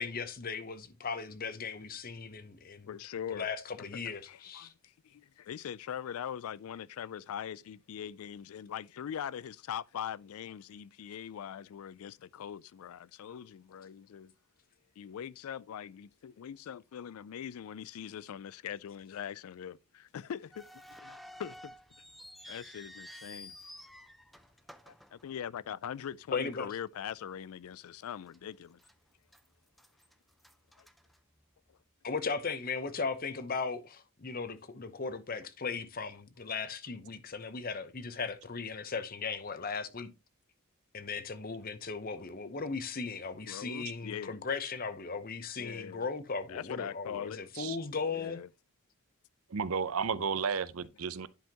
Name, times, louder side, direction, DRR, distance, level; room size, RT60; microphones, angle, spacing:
voice 1, 0.0-2.9 3.3-4.7 22.4-22.6 26.3-26.7 32.0-40.1 40.9-48.4, left 4 dB, 40° left, 0.8 m, -37 dB
voice 2, 2.9-3.5 3.8-3.9 4.3-4.7 5.0-14.3 15.0-20.7 21.0-21.7 22.5-23.6 24.9-28.8 30.8-30.9 43.4-44.4 45.6-46.1 46.5-47.4 48.1-48.5, left 9 dB, 75° left, 0.3 m, -42 dB
sound 1, 20.5-25.8 26.1-26.2 27.0-27.2 27.6-27.7 28.3-28.9 29.3-31.7, left 1 dB, ahead, 0.4 m, -52 dB
voice 3, 49.5-51.3, right 5 dB, 75° right, 0.6 m, -33 dB
10.5 x 5.6 x 2.9 m
head